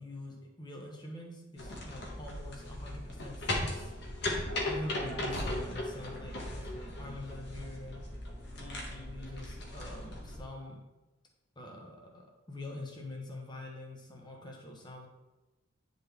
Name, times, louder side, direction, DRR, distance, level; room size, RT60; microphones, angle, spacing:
voice 1, 0.0-3.9 4.6-8.0 8.6-10.8 11.6-15.1, left 1 dB, 25° left, 0 dB, 1.2 m, -45 dB
sound 1, 1.6-10.4, left 1 dB, 60° left, 1.4 m, -37 dB
9.8 x 4.0 x 3.5 m, 1.1 s
head